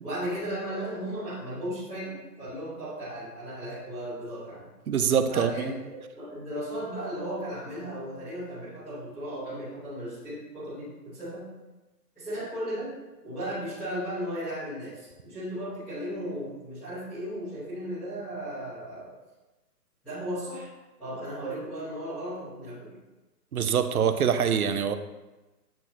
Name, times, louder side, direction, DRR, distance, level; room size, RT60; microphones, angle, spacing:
voice 1, 0.0-4.6 5.3-11.5 12.1-12.9 13.2-19.1 20.0-20.7 21.0-23.0, equal, ahead, -23 dB, 1.3 m, -35 dB
voice 2, 4.9-5.7 23.5-24.9, right 7 dB, 60° right, 9 dB, 0.6 m, -24 dB
8.5 x 4.0 x 3.0 m, 1.1 s
hypercardioid pair, 175°, 49 cm